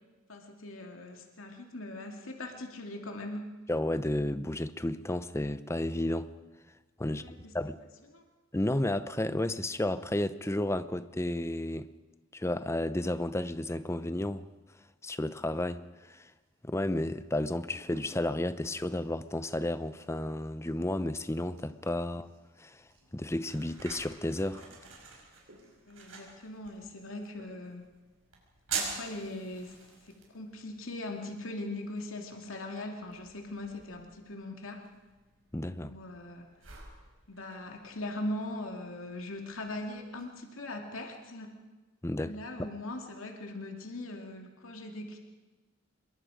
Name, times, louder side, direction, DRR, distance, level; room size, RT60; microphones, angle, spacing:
voice 1, 0.3-3.5 7.1-7.4 7.8-8.2 25.9-27.8 28.7-29.8 30.0-34.8 35.8-36.5 37.3-41.6 42.2-45.2, left 1 dB, 85° left, 2.5 m, -40 dB
voice 2, 3.7-6.3 7.0-7.2 7.5-7.8 8.5-11.9 12.3-14.5 15.0-16.3 16.6-22.3 22.6-22.8 23.1-24.7 35.5-35.9 42.0-42.4, left 1 dB, 15° left, 0.7 m, -32 dB
sound 1, 16.3-16.8 17.1-26.0 26.9-27.1 27.4-27.9 28.1-28.2 28.6-28.7 29.0-29.2 29.5-30.0, right 1 dB, 65° right, 5.6 m, -61 dB
sound 2, 22.7-40.3, right 5 dB, 85° right, 5.5 m, -46 dB
26.0 x 22.5 x 5.0 m
head